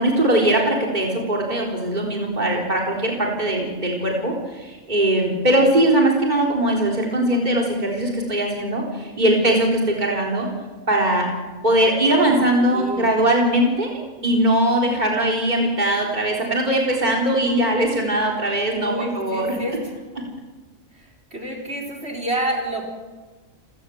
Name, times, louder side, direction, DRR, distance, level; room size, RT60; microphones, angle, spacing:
voice 1, 0.0-10.5 10.9-11.3 11.6-19.6, right 1 dB, 30° right, -1 dB, 4.1 m, -20 dB
voice 2, 12.7-13.1 18.7-19.9 20.9-22.9, right 1 dB, 50° right, 2 dB, 4.7 m, -29 dB
29.5 x 17.5 x 7.8 m, 1.3 s
omnidirectional pair, 1.4 m